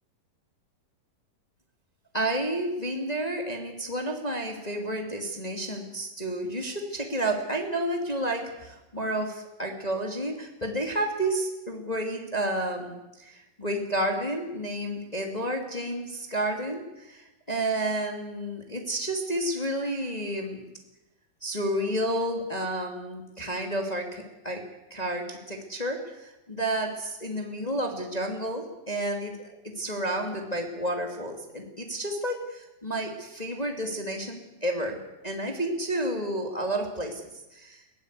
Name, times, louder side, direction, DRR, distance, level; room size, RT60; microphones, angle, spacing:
voice 1, 2.1-20.7 21.4-24.6 24.9-29.4 29.6-35.0 35.2-37.2 37.5-37.8, right 1 dB, 15° left, 2 dB, 2.0 m, -31 dB
21.0 x 18.0 x 8.2 m, 0.98 s
omnidirectional pair, 3.8 m